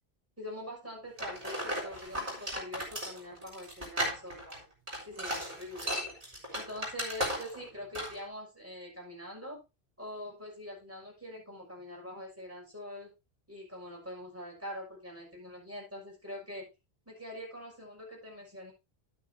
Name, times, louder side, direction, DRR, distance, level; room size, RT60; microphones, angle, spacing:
voice 1, 0.4-4.6 5.0-5.9 6.5-9.6 10.0-13.1 13.5-16.7 17.1-18.7, left 1 dB, 15° right, -3 dB, 6.5 m, -44 dB
sound 1, 1.2-7.7 7.9-8.2, equal, 35° right, 4.3 m, -35 dB
11.5 x 9.6 x 2.8 m, 0.25 s
omnidirectional pair, 1.1 m